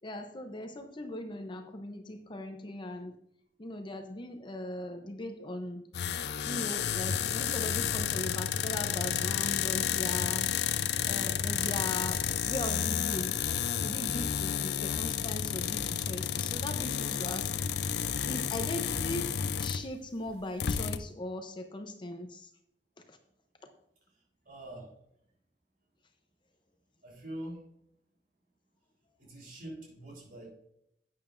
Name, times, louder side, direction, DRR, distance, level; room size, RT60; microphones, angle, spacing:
voice 1, 0.0-3.1 3.6-5.8 6.4-10.5 11.0-13.3 13.8-17.5 18.2-19.3 19.6-22.5 23.1-23.2, left 1 dB, 25° left, 6 dB, 0.7 m, -39 dB
sound 1, 5.9-19.9 20.3-20.4 20.6-21.0, left 8 dB, 65° left, 0.5 m, -31 dB
voice 2, 24.4-24.9 27.0-27.6 29.2-30.5, right 1 dB, 55° right, -1 dB, 3.7 m, -44 dB
11.5 x 8.9 x 2.6 m, 0.76 s
head